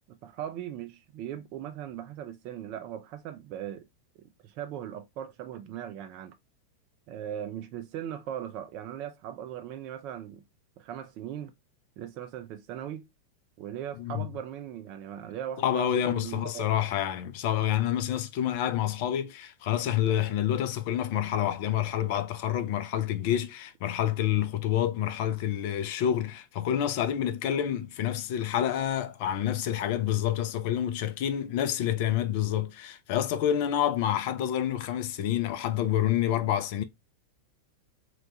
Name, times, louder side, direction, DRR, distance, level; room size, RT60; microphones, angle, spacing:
voice 1, 0.1-3.9 4.2-6.3 7.1-10.4 10.8-11.5 12.0-13.1 13.6-16.6, right 10 dB, 40° right, 0.4 m, -39 dB
voice 2, 15.6-36.8, left 10 dB, 50° left, 0.4 m, -28 dB
3.0 x 2.2 x 3.8 m
figure-of-eight pair, 90°, 0 cm